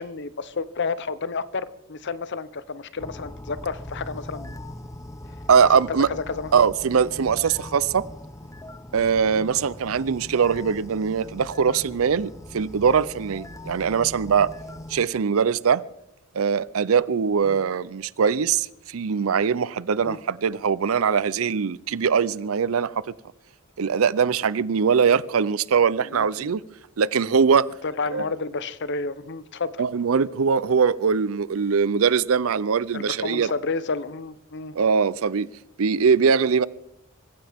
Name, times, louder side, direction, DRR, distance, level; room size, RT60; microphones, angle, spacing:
voice 1, 0.0-4.6 5.9-6.5 9.2-9.5 17.4-17.6 20.0-20.2 26.0-26.5 27.8-29.8 32.9-34.8, left 4 dB, 55° left, 0.8 m, -31 dB
sound 1, 3.0-15.1, left 1 dB, 15° left, 0.8 m, -40 dB
voice 2, 5.5-6.1 6.5-8.0 8.9-14.5 14.9-15.8 16.3-23.0 23.8-26.6 27.0-27.7 28.1-28.2 29.8-33.5 34.7-35.5 35.8-36.7, right 6 dB, 75° right, 0.5 m, -21 dB
25.5 x 15.0 x 3.6 m
head